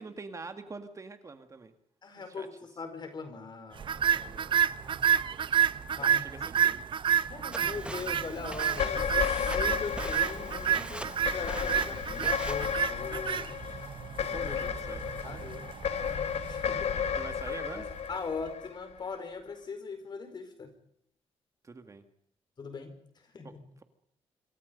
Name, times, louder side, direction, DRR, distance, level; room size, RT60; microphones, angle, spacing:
voice 1, 0.0-1.7 2.2-2.5 6.0-6.8 13.7-13.8 14.2-15.4 17.1-17.9 21.6-22.0 23.4-23.5, right 4 dB, 30° right, 7 dB, 2.1 m, -45 dB
voice 2, 2.0-5.1 5.9-6.4 7.3-13.6 14.3-14.5 15.2-15.7 16.0-17.1 17.7-20.7 22.6-22.9 23.3-23.6, left 4 dB, 45° left, 8 dB, 4.9 m, -41 dB
sound 1, 3.8-18.1, right 9 dB, 50° right, 0.9 m, -30 dB
Walk footsteps, 7.5-12.7, right 1 dB, 10° right, 1.3 m, -43 dB
sound 2, 8.7-19.2, left 7 dB, 70° left, 1.3 m, -33 dB
27.0 x 24.5 x 5.4 m, 0.71 s
cardioid pair, 135°, 11 cm